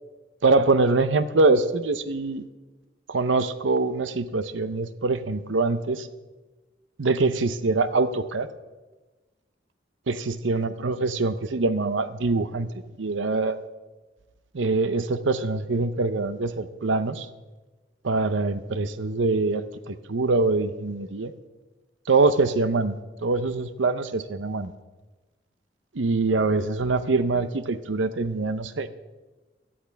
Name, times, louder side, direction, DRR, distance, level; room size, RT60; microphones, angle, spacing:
voice 1, 0.4-2.4 3.1-6.1 7.0-8.5 10.1-12.7 13.0-13.6 14.5-17.3 18.0-21.3 22.1-24.7 25.9-28.9, right 3 dB, 85° right, 12 dB, 0.7 m, -24 dB
17.5 x 12.0 x 3.5 m, 1.2 s
head